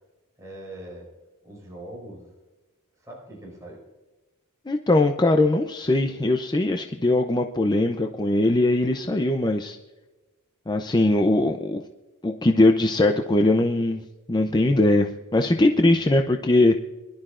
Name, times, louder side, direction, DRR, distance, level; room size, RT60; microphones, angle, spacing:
voice 1, 0.4-1.1 1.4-2.3 3.0-3.8 15.5-15.8, right 1 dB, 15° right, -3 dB, 5.1 m, -42 dB
voice 2, 4.7-9.8 10.7-11.8 12.2-14.0 14.3-16.8, left 2 dB, 20° left, 4 dB, 0.5 m, -21 dB
24.5 x 12.0 x 2.5 m, 1.2 s
head